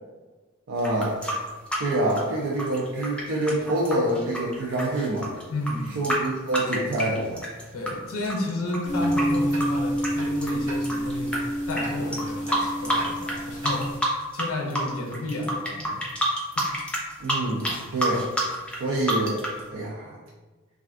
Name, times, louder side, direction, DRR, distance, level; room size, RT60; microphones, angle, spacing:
voice 1, 0.7-1.2 1.8-5.3 6.0-7.4 17.2-18.3 18.8-20.2, right 1 dB, 75° right, -4 dB, 0.4 m, -26 dB
sound 1, 0.8-7.9 8.2-11.4 11.7-11.8 12.1-13.4 13.6-14.5 14.7-19.6, right 1 dB, 5° left, 0.4 m, -28 dB
voice 2, 5.5-6.0 7.7-11.4 11.7-13.9 14.3-16.0 16.6-16.7, left 2 dB, 75° left, 0 dB, 0.6 m, -31 dB
sound 2, 8.8-14.0, equal, 20° right, 1.4 m, -28 dB
3.3 x 2.4 x 2.4 m, 1.3 s
head